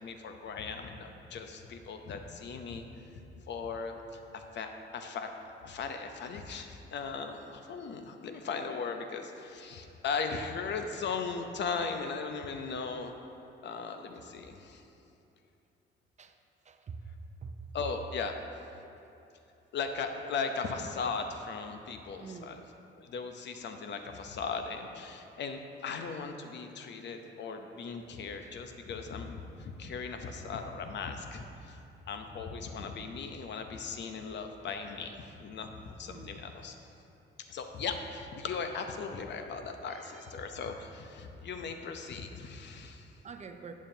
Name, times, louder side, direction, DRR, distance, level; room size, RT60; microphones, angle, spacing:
voice 1, 0.0-2.8 3.5-5.3 5.6-13.1 13.6-14.8 17.7-18.4 19.7-22.6 23.0-36.8 37.4-43.1, left 5 dB, 65° left, 6 dB, 0.8 m, -38 dB
voice 2, 16.6-17.0 17.4-17.6 22.2-22.6 28.4-28.5 36.1-36.4 39.9-40.3 43.2-43.7, right 5 dB, 35° right, 7 dB, 0.6 m, -46 dB
11.5 x 7.3 x 2.8 m, 2.9 s
cardioid pair, 90°, 20 cm